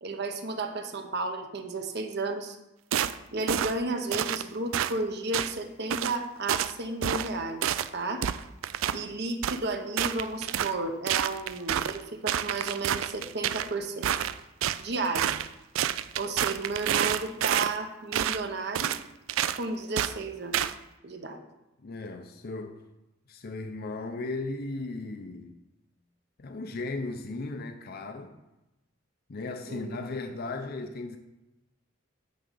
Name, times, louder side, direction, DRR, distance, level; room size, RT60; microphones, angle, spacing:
voice 1, 0.0-2.6 3.3-8.3 8.9-14.1 14.8-15.3 16.2-18.9 19.6-20.6 21.0-21.4 29.7-29.9, right 2 dB, 55° right, 0.9 m, -33 dB
sound 1, 2.9-3.2 3.5-3.8 4.1-4.4 4.7-4.9 5.3-5.5 5.9-6.2 6.5-6.7 7.0-7.3 7.6-7.9 8.2-9.0 9.4-9.6 10.0-10.7 11.1-12.0 12.3-13.7 14.0-14.8 15.1-15.5 15.8-17.7 18.1-18.4 18.7-19.0 19.3-19.6 20.0-20.1 20.5-20.7, right 10 dB, 80° right, 0.4 m, -28 dB
voice 2, 21.8-22.8 23.3-25.6 26.4-28.4 29.3-31.2, left 3 dB, 50° left, 0.6 m, -36 dB
9.4 x 3.7 x 6.8 m
head